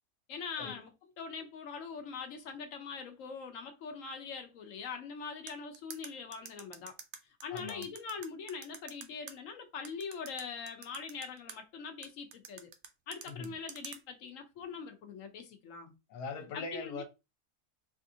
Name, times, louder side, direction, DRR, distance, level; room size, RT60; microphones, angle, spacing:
voice 1, 0.3-0.9 1.2-7.0 7.2-12.7 13.1-15.9 16.5-17.0, left 5 dB, 65° left, 0.9 m, -42 dB
sound 1, 5.5-9.3 9.8-11.6 12.0-14.0, right 7 dB, 70° right, 0.7 m, -47 dB
voice 2, 7.5-7.9 13.3-13.5 16.1-17.0, left 4 dB, 85° left, 1.2 m, -41 dB
3.4 x 2.5 x 2.6 m
omnidirectional pair, 1.7 m